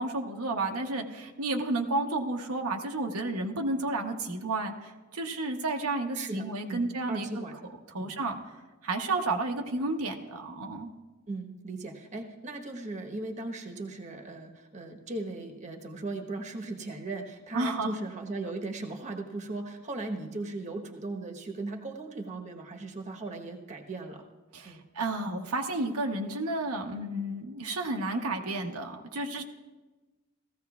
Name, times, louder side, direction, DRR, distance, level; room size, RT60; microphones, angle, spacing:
voice 1, 0.0-7.3 7.9-8.4 8.8-10.9 17.5-17.9 24.5-29.4, right 2 dB, 85° right, 2 dB, 1.0 m, -31 dB
voice 2, 6.1-7.6 8.0-8.2 11.3-24.2 24.6-24.8, right 2 dB, 35° right, 2 dB, 1.1 m, -38 dB
18.0 x 15.0 x 2.4 m, 1.2 s
head